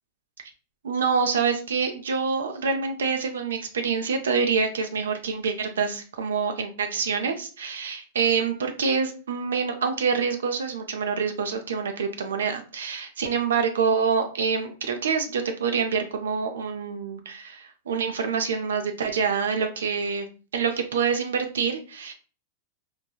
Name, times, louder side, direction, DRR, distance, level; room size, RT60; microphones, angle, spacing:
voice 1, 0.8-20.3 20.5-22.1, right 5 dB, 80° right, 5 dB, 0.4 m, -26 dB
3.1 x 2.2 x 2.3 m, 0.36 s
hypercardioid pair, 100°, 0 cm